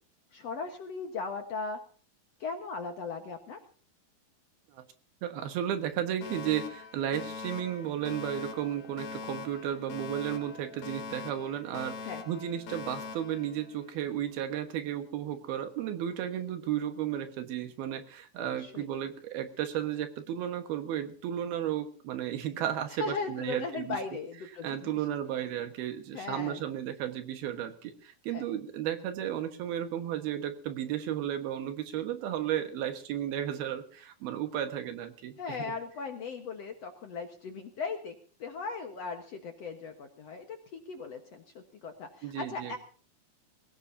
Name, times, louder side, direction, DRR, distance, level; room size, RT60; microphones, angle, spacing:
voice 1, 0.3-1.8 2.4-3.6 12.1-12.2 18.4-18.9 23.0-24.9 26.1-26.6 28.3-28.4 35.4-42.8, left 4 dB, 55° left, 4 dB, 1.9 m, -38 dB
voice 2, 5.2-12.0 12.3-24.0 24.6-35.7 42.2-42.8, right 10 dB, 75° right, 8 dB, 3.3 m, -34 dB
Alarm, 6.2-14.2, left 5 dB, 90° left, 4.0 m, -43 dB
21.5 x 17.5 x 2.8 m, 0.42 s
omnidirectional pair, 4.5 m